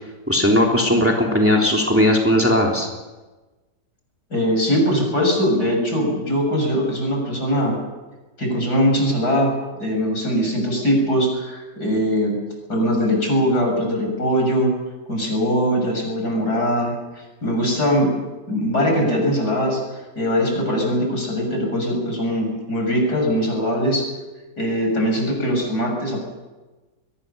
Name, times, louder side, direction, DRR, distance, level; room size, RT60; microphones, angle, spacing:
voice 1, 0.3-2.9, left 1 dB, 5° right, -1 dB, 3.3 m, -17 dB
voice 2, 4.3-7.8 8.4-9.5 9.8-12.3 12.7-14.7 15.1-17.0 17.4-18.1 18.5-19.8 20.2-24.0 24.6-26.3, equal, 65° left, 1 dB, 7.5 m, -21 dB
22.5 x 19.5 x 6.9 m, 1.2 s
omnidirectional pair, 1.8 m